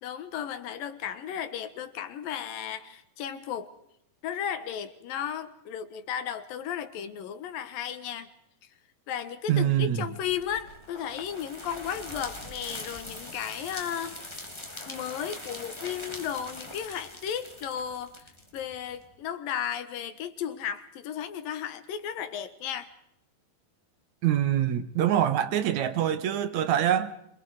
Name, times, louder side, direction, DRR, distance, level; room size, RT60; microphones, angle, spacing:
voice 1, 0.0-3.7 4.2-8.3 9.1-14.4 14.8-18.2 18.5-22.9, left 9 dB, 70° left, 3.0 m, -34 dB
voice 2, 9.5-10.0 24.2-27.1, right 10 dB, 60° right, 2.4 m, -25 dB
sound 1, 10.2-19.0, left 1 dB, 10° left, 2.5 m, -42 dB
27.0 x 25.0 x 4.9 m
omnidirectional pair, 4.3 m